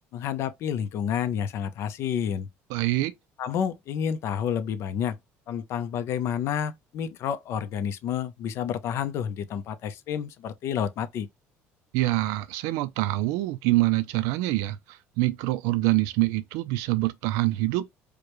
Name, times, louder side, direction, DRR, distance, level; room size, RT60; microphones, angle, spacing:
voice 1, 0.1-2.5 3.4-5.2 5.5-11.3, left 8 dB, 55° left, 0.7 m, -29 dB
voice 2, 2.7-3.2 11.9-17.9, right 18 dB, 90° right, 0.5 m, -25 dB
4.8 x 2.2 x 3.0 m
cardioid pair, 135°, 5 cm